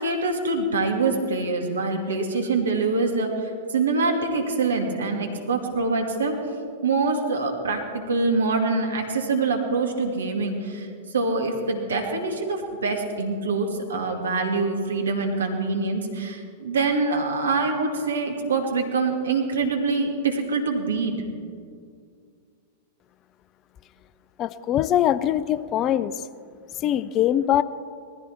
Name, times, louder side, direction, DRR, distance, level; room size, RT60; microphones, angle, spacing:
voice 1, 0.0-6.4 6.8-21.2, right 3 dB, 70° right, 2 dB, 2.4 m, -25 dB
voice 2, 24.4-26.2 26.8-27.6, left 11 dB, 30° left, 15 dB, 0.5 m, -22 dB
19.5 x 14.5 x 4.5 m, 2.2 s
figure-of-eight pair, 95°, 0 cm